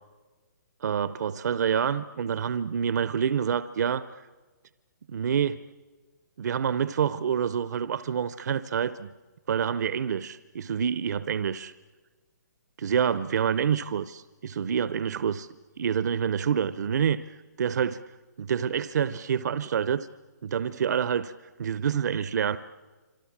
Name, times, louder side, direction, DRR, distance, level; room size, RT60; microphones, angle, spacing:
voice 1, 0.8-4.0 5.1-5.6 6.4-9.1 9.5-11.7 12.8-15.5 15.8-17.2 17.6-18.0 18.4-20.1 20.4-21.3 21.6-22.6, right 7 dB, 65° right, 14 dB, 0.8 m, -27 dB
29.5 x 26.5 x 7.4 m, 1.3 s
hypercardioid pair, 150°, 10 cm